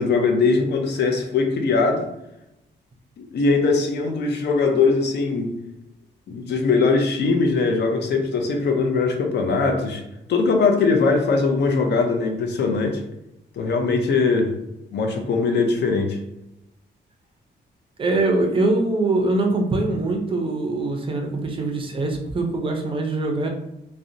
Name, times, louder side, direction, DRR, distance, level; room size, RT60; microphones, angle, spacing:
voice 1, 0.0-2.0 3.2-5.5 6.3-10.0 10.3-13.0 13.6-14.5 14.9-16.2, left 4 dB, 70° left, 3 dB, 0.5 m, -21 dB
voice 2, 18.0-23.5, right 2 dB, 30° right, 2 dB, 0.4 m, -23 dB
2.7 x 2.0 x 2.5 m, 0.87 s
wide cardioid pair, 180°, 18 cm